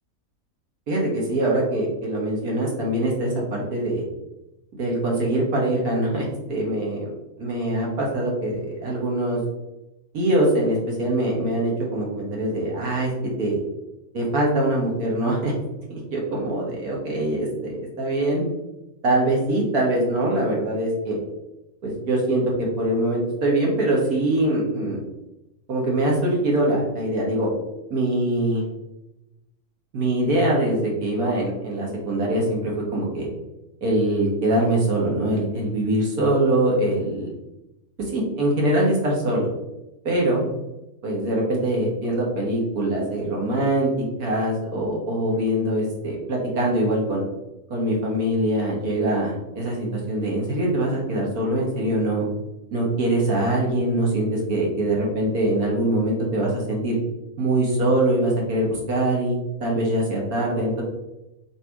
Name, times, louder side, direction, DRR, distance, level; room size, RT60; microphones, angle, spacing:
voice 1, 0.9-4.0 4.8-7.1 7.4-9.4 10.1-13.1 13.4-13.6 14.1-15.5 15.9-18.4 19.0-21.2 21.8-25.0 25.7-27.5 27.9-28.6 29.9-33.3 33.8-37.3 38.0-39.5 40.1-40.4 41.0-47.3 47.7-52.2 52.7-57.0 57.4-60.8, right 1 dB, 85° right, -2 dB, 1.8 m, -23 dB
4.0 x 2.8 x 4.5 m, 0.96 s
omnidirectional pair, 1.5 m